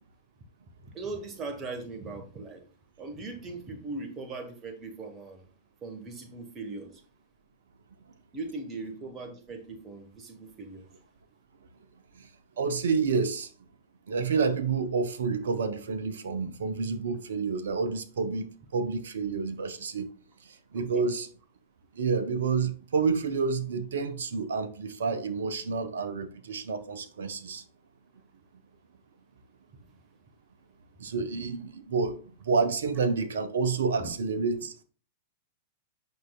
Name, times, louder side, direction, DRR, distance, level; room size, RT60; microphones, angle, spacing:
voice 1, 0.9-2.6 3.0-5.5 5.8-7.0 8.3-10.9 20.7-21.1 34.0-34.1, right 3 dB, 25° right, 1.3 m, -39 dB
voice 2, 12.6-13.5 14.1-20.1 20.4-21.3 21.9-27.6 31.0-34.7, right 5 dB, 70° right, 0.8 m, -29 dB
9.2 x 5.7 x 2.3 m
figure-of-eight pair, 100°, 0 cm